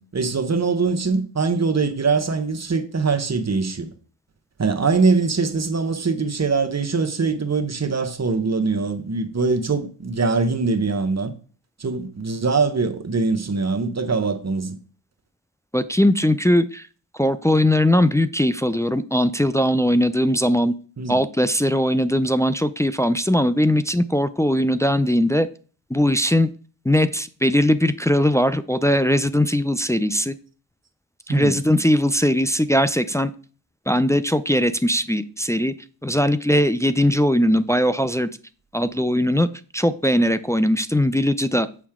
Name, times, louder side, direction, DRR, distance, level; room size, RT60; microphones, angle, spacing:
voice 1, 0.0-3.9 4.6-11.3 11.8-14.8 21.0-21.2 31.3-31.6, right 4 dB, 35° right, 1.1 m, -22 dB
voice 2, 15.7-16.9 17.1-20.7 21.1-25.5 25.9-26.5 26.9-30.3 31.3-33.3 33.9-35.7 36.0-38.3 38.7-39.5 39.7-41.7, left 1 dB, 5° left, 0.3 m, -20 dB
7.2 x 5.7 x 3.6 m
cardioid pair, 55°, 48 cm